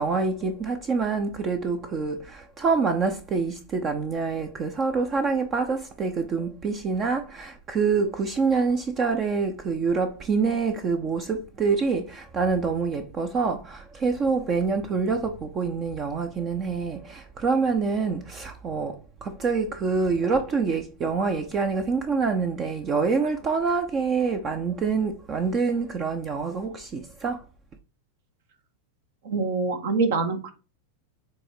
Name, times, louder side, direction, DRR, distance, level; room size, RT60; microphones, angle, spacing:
voice 1, 0.0-27.4, right 4 dB, 30° right, 0.8 m, -26 dB
voice 2, 29.2-30.5, right 4 dB, 55° right, 1.5 m, -25 dB
7.7 x 3.6 x 4.6 m
figure-of-eight pair, 90°, 0 cm